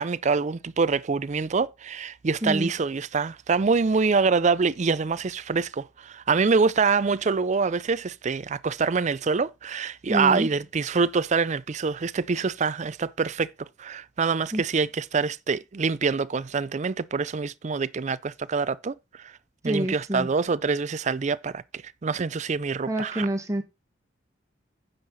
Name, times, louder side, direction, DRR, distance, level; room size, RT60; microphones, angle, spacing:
voice 1, 0.0-13.5 13.8-19.3 19.6-21.6 22.0-23.3, right 4 dB, 40° right, 0.4 m, -25 dB
voice 2, 2.4-2.7 10.1-10.5 14.5-14.6 19.6-20.3 22.9-23.6, right 1 dB, 15° right, 1.9 m, -27 dB
9.7 x 6.6 x 4.0 m
head